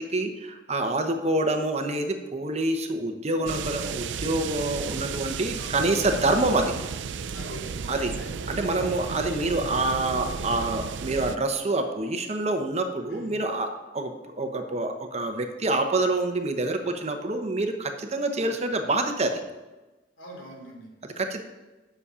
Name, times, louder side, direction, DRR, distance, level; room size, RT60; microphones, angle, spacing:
voice 1, 0.0-6.7 7.9-8.1 8.5-19.4 21.0-21.4, right 2 dB, 35° right, 6 dB, 0.9 m, -27 dB
sound 1, 3.5-11.4, right 5 dB, 75° right, 0.5 m, -33 dB
voice 2, 5.6-6.1 7.3-8.3 13.1-13.3 18.3-18.7 20.2-20.9, equal, 85° left, -1 dB, 3.0 m, -44 dB
9.8 x 6.9 x 5.0 m, 1.1 s
head